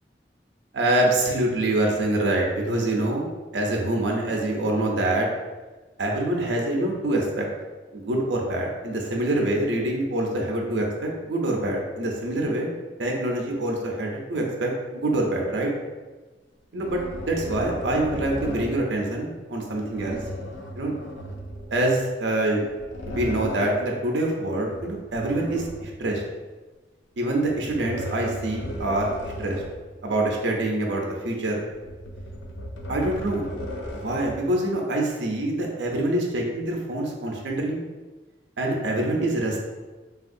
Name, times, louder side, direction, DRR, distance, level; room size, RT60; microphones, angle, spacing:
voice 1, 0.7-3.2 3.5-5.3 6.0-7.5 7.9-12.7 13.0-15.7 16.7-20.2 20.8-20.9 21.7-22.6 23.1-26.2 27.2-29.6 30.0-31.6 32.9-33.4 33.9-37.8 38.6-39.6, right 1 dB, 80° right, 0 dB, 0.5 m, -25 dB
sound 1, 16.7-18.8 19.9-22.0 22.6-23.9 24.7-26.1 27.4-29.9 30.3-30.4 31.7-34.5, equal, 90° left, 0.5 m, -35 dB
3.4 x 2.3 x 2.5 m, 1.2 s
head